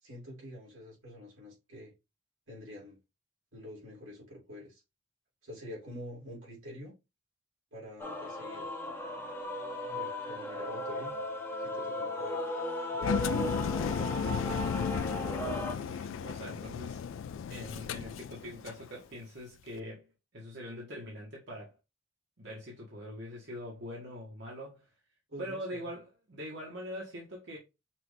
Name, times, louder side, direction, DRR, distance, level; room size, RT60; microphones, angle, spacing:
voice 1, 0.0-1.9 2.5-3.0 3.5-4.8 5.4-6.9 7.7-8.7 9.7-11.2 11.6-12.4 12.9-13.6 25.3-25.8, left 1 dB, 85° right, 2.9 m, -47 dB
Male singing / Female singing / Musical instrument, 8.0-15.7, left 1 dB, 10° left, 0.9 m, -36 dB
Engine, 13.0-18.8, left 7 dB, 75° left, 0.3 m, -34 dB
Guitar, 13.3-18.9, left 1 dB, 55° left, 1.5 m, -46 dB
voice 2, 15.7-17.0 17.5-20.0 20.3-21.7 22.4-24.8 25.4-27.6, equal, 60° right, 1.4 m, -43 dB
5.9 x 2.6 x 3.3 m
head